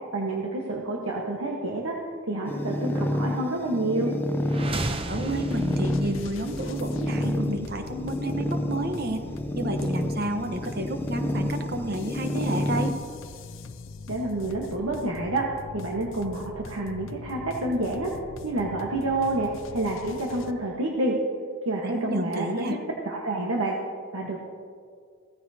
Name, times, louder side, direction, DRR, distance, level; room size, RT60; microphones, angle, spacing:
voice 1, 0.1-2.0 2.3-4.1 14.1-15.4 15.7-18.1 18.4-21.2 21.6-22.7 23.0-23.7 24.1-24.4, right 2 dB, 80° right, -2 dB, 1.3 m, -28 dB
sound 1, 2.4-12.9, left 1 dB, 10° left, 0.6 m, -29 dB
sound 2, 4.4-8.4, right 2 dB, 25° right, 0.6 m, -35 dB
sound 3, 5.1-20.5, left 3 dB, 65° left, 0.6 m, -42 dB
voice 2, 5.1-9.2 9.5-12.9 21.8-22.8, right 1 dB, 45° right, 6 dB, 1.0 m, -30 dB
16.5 x 14.5 x 2.8 m, 2.2 s
head